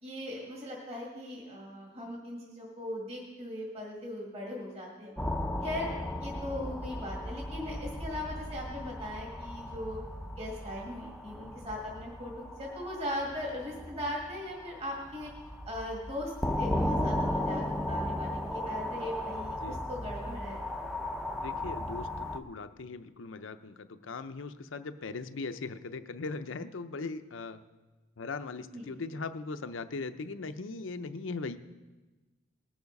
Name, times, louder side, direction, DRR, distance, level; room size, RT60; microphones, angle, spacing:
voice 1, 0.0-5.2 5.6-5.9 6.2-10.0 10.4-12.3 12.6-15.3 15.6-16.3 16.6-20.6 28.7-28.9, left 1 dB, 30° right, -3 dB, 2.3 m, -39 dB
sound 1, 5.2-22.4, left 1 dB, ahead, 0.6 m, -36 dB
voice 2, 21.4-27.6 28.2-31.6, left 3 dB, 80° left, 10 dB, 0.6 m, -39 dB
19.5 x 7.1 x 5.3 m, 1.2 s
head